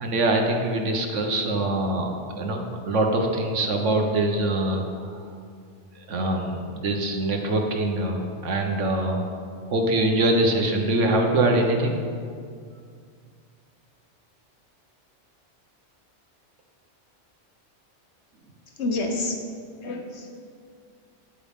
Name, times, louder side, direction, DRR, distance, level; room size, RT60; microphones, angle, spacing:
voice 1, 0.0-5.2 5.9-9.3 9.7-12.0, right 1 dB, 85° right, 3 dB, 1.4 m, -24 dB
voice 2, 18.8-19.4 19.8-20.5, left 2 dB, 65° left, 2 dB, 1.3 m, -29 dB
10.5 x 8.7 x 3.6 m, 2.2 s
omnidirectional pair, 1.2 m